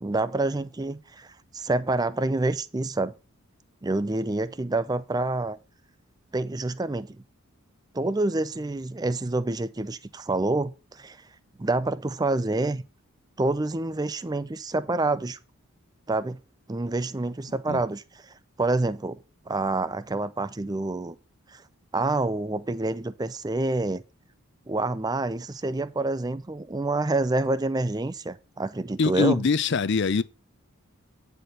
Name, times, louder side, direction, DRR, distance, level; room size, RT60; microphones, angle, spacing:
voice 1, 0.0-1.3 1.5-3.1 3.8-5.6 6.3-7.2 7.9-11.2 11.6-12.8 13.4-15.4 16.1-16.4 16.7-19.2 19.5-21.2 21.5-21.6 21.9-24.0 24.7-29.4, right 2 dB, 15° right, 0.4 m, -27 dB
voice 2, 29.0-30.2, left 4 dB, 50° left, 0.5 m, -23 dB
9.4 x 4.3 x 6.6 m
head